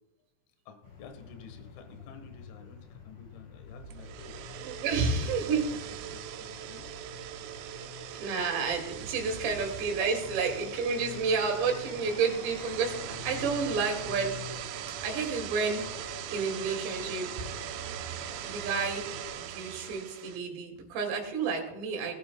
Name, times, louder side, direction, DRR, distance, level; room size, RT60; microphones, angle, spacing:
voice 1, 0.7-4.4 4.9-5.6 6.1-6.9, left 4 dB, 75° left, 7 dB, 3.6 m, -51 dB
sound 1, 0.8-19.5, left 5 dB, 55° left, 4.1 m, -48 dB
sound 2, 3.8-20.4, right 10 dB, 85° right, 2.8 m, -41 dB
voice 2, 4.6-6.0 8.1-15.8 16.3-17.5 18.4-19.1 19.3-22.1, right 5 dB, 65° right, 2 dB, 4.0 m, -31 dB
19.0 x 12.0 x 2.3 m, 0.97 s
omnidirectional pair, 5.8 m